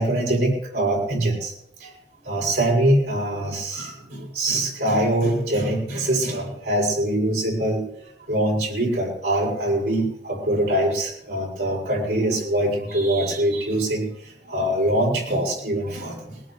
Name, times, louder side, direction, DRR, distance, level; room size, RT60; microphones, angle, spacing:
voice 1, 0.0-1.5 1.8-1.9 2.2-7.9 8.3-16.3, right 1 dB, 70° right, -3 dB, 7.2 m, -23 dB
21.0 x 18.0 x 3.3 m, 0.75 s
head